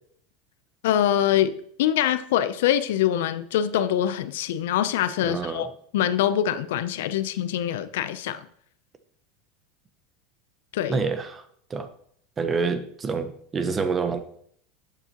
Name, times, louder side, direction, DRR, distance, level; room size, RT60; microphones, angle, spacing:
voice 1, 0.8-5.7 5.9-8.4 10.7-11.0, left 11 dB, 85° left, 0.5 m, -24 dB
voice 2, 5.2-5.7 10.9-11.9 12.4-14.2, right 4 dB, 20° right, 0.8 m, -27 dB
11.5 x 7.1 x 2.9 m
supercardioid pair, 145°, 0 cm